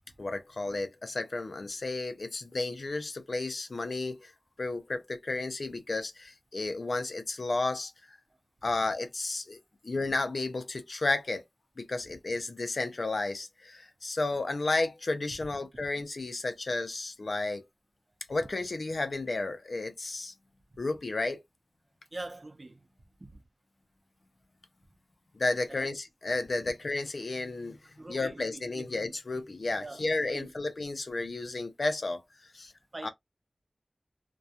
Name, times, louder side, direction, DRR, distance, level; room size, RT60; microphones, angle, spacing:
voice 1, 0.2-4.3 4.6-7.9 8.6-9.6 9.8-11.4 11.8-17.6 18.3-20.3 20.8-21.4 25.3-27.8 28.1-32.2 32.5-32.7 33.0-33.1, left 2 dB, 80° left, 0.5 m, -32 dB
voice 2, 22.1-22.8 23.2-23.4 25.7-25.9 28.0-29.1 29.8-30.5 32.9-33.1, right 2 dB, 50° right, 0.6 m, -43 dB
2.3 x 2.2 x 2.7 m
wide cardioid pair, 70°, 0 cm